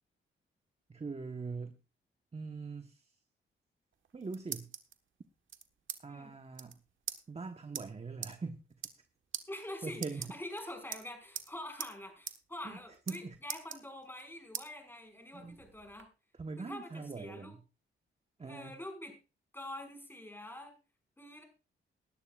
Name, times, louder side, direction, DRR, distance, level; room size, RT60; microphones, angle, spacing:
voice 1, 0.9-1.8 2.3-3.2 4.1-4.7 6.0-6.8 7.3-8.6 9.8-10.3 12.6-12.8 13.1-13.4 15.3-15.6 16.3-17.6 18.4-18.7, right 4 dB, 30° right, 7 dB, 1.2 m, -42 dB
sound 1, 3.9-4.9 5.5-6.0 6.3-6.4 6.5-6.7 7.1-7.2 7.7-7.8 8.2-8.3 8.7-9.1 9.3-9.4 9.9-10.6 10.9-11.5 11.8-11.9 12.3-12.4 12.7-13.2 13.5-14.2 14.5-14.7 15.2-16.0, right 8 dB, 70° right, 1.4 m, -41 dB
voice 2, 9.5-10.0 10.3-16.1 16.6-17.6 18.4-19.1 19.5-20.7 21.2-21.4, left 1 dB, 10° left, 4 dB, 5.3 m, -45 dB
19.0 x 11.5 x 2.4 m, 0.31 s
cardioid pair, 85°, 21 cm